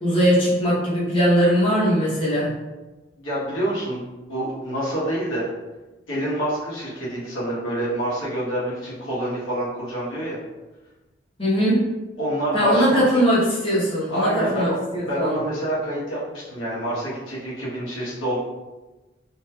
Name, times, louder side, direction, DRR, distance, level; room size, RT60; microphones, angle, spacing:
voice 1, 0.0-2.5 11.4-11.8 12.5-15.4, equal, 30° left, -8 dB, 0.9 m, -20 dB
voice 2, 3.2-4.0 4.3-5.4 6.1-10.4 12.2-13.1 14.1-14.8 15.0-18.4, right 1 dB, 90° left, -8 dB, 1.2 m, -27 dB
2.9 x 2.9 x 2.3 m, 1.1 s
head